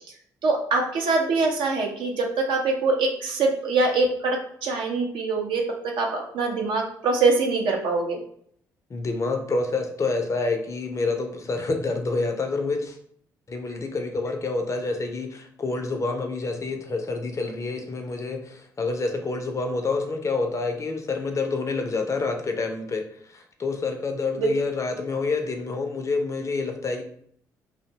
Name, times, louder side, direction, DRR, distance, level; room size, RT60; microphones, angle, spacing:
voice 1, 0.4-8.2 24.4-24.5, right 3 dB, 65° right, 1 dB, 0.6 m, -24 dB
voice 2, 8.9-13.0 13.5-27.0, left 3 dB, 35° left, 4 dB, 0.5 m, -28 dB
2.6 x 2.1 x 2.8 m, 0.64 s
hypercardioid pair, 50°, 9 cm